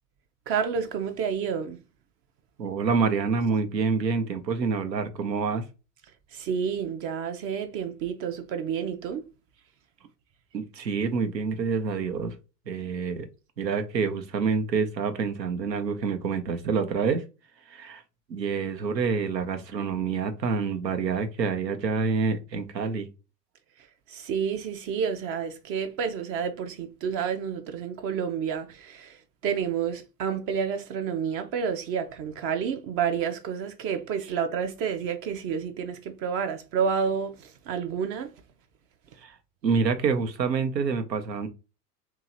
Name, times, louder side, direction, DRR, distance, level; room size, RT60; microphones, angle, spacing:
voice 1, 0.5-1.8 6.3-9.2 24.1-29.2 29.4-38.3, right 7 dB, 30° right, 0.5 m, -29 dB
voice 2, 2.6-5.6 10.5-12.3 12.7-13.3 13.6-17.2 17.7-18.0 18.3-23.1 39.2-39.3 39.6-41.5, right 5 dB, 80° right, 0.8 m, -27 dB
3.0 x 2.8 x 3.8 m
figure-of-eight pair, 85°, 49 cm